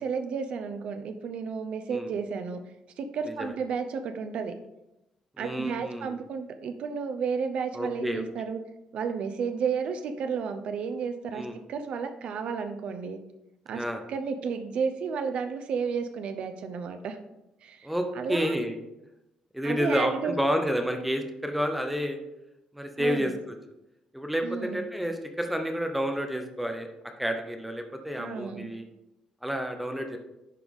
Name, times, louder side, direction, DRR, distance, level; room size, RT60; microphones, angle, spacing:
voice 1, 0.0-2.6 3.0-4.5 5.4-8.6 8.9-13.2 13.7-17.2 17.6-17.9 18.1-18.6 19.6-20.3 23.0-23.3 24.4-24.8 28.2-28.7, right 6 dB, 55° right, 8 dB, 0.6 m, -32 dB
voice 2, 5.4-6.1 7.7-8.2 11.3-11.5 13.7-14.0 17.8-18.8 19.5-22.2 22.7-23.6 24.1-26.9 27.2-28.8 29.4-30.2, equal, 5° right, 5 dB, 0.7 m, -30 dB
11.0 x 4.0 x 3.6 m, 0.90 s
cardioid pair, 165°, 2 cm